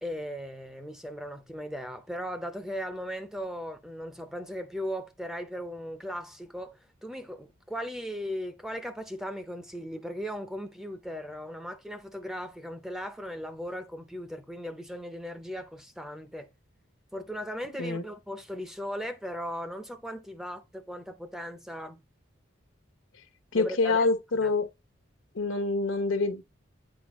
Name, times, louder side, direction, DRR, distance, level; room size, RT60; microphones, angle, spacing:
voice 1, 0.0-16.5 17.1-22.0 23.5-24.1 24.4-24.5, equal, ahead, 0.5 m, -37 dB
voice 2, 23.5-24.7 25.3-26.4, left 3 dB, 75° left, 0.9 m, -26 dB
8.8 x 3.7 x 3.0 m
head